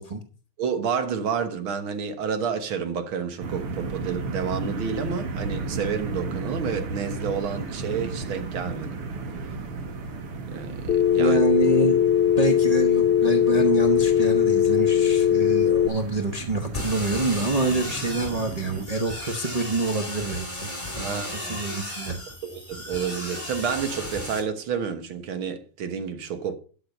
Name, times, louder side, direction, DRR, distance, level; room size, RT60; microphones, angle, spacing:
voice 1, 0.6-9.0 10.5-11.4 21.0-21.6 22.4-26.5, right 6 dB, 70° right, 2.0 m, -30 dB
sound 1, 3.4-18.9, right 3 dB, 85° right, 2.5 m, -34 dB
Telephone, 10.9-15.9, left 10 dB, 75° left, 1.5 m, -20 dB
voice 2, 11.2-12.0 12.4-22.2, right 3 dB, 40° right, 0.5 m, -27 dB
sound 2, 16.7-24.4, left 1 dB, 15° left, 4.3 m, -35 dB
12.0 x 6.5 x 5.4 m
omnidirectional pair, 2.4 m